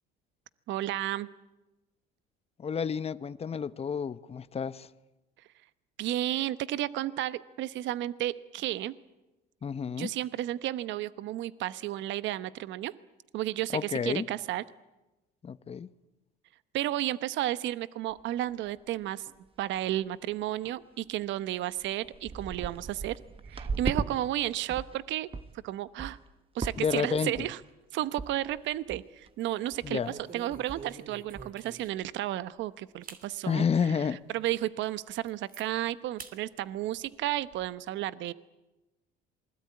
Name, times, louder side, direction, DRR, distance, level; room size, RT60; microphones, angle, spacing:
voice 1, 0.7-1.3 6.0-8.9 10.0-12.9 13.3-14.6 16.7-19.3 19.6-23.1 23.5-25.3 25.6-26.2 26.5-27.6 27.9-30.0 30.3-34.0 34.3-38.3, right 14 dB, 65° right, 1.0 m, -32 dB
voice 2, 2.6-4.9 9.6-10.1 13.7-14.3 15.4-15.9 26.8-27.5 29.8-30.1 33.4-34.2, left 6 dB, 30° left, 1.0 m, -30 dB
sound 1, 18.1-18.2 18.7-18.8 19.0-19.5 19.8-20.0 20.6-20.7 21.4-21.5 21.8-24.1 24.4-25.0 25.3-25.5 26.0-26.3 26.6-27.0 27.3-27.7 28.2-28.3 28.6-28.7 28.9-29.3 29.7-29.9 30.2-30.3 30.5-30.9 31.3-31.5, right 4 dB, 25° right, 1.6 m, -37 dB
sound 2, 28.2-28.9 29.3-29.5 30.0-32.1 32.6-32.7 33.0-33.3 33.8-33.9 34.4-34.5 34.8-35.7 36.2-36.4 36.8-37.7, right 5 dB, 45° right, 3.1 m, -48 dB
27.0 x 21.0 x 9.6 m
supercardioid pair, 85°, 21 cm